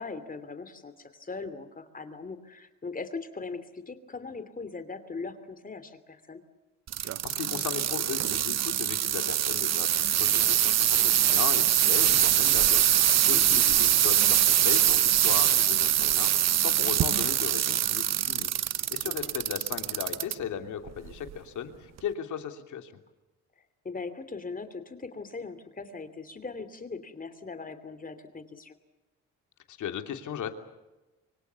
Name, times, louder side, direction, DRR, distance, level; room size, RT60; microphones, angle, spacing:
voice 1, 0.0-6.4 13.3-13.7 19.2-19.4 23.6-28.7, left 4 dB, 30° left, 11 dB, 2.9 m, -40 dB
sound 1, 6.9-20.3 20.9-21.3 22.0-22.1, right 11 dB, 60° right, 1.0 m, -24 dB
voice 2, 7.0-18.6 18.9-22.9 29.7-30.5, left 8 dB, 75° left, 6 dB, 3.0 m, -37 dB
25.0 x 25.0 x 7.0 m, 1.1 s
cardioid pair, 90°, 30 cm